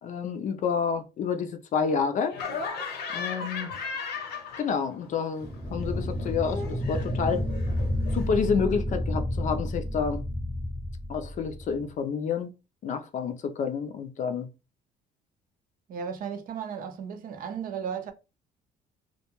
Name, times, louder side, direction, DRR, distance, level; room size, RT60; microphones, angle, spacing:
voice 1, 0.0-2.4 3.1-3.7 4.6-7.5 8.1-10.2 11.1-12.5 12.8-14.5, left 6 dB, 45° left, 0.5 m, -29 dB
Laughter, 2.3-5.1 5.4-8.3, left 5 dB, 75° left, 0.8 m, -37 dB
sound 1, 5.4-11.9, left 1 dB, 5° right, 0.6 m, -30 dB
voice 2, 15.9-18.1, right 7 dB, 55° right, 0.5 m, -35 dB
2.2 x 2.2 x 2.9 m
cardioid pair, 110°, 17 cm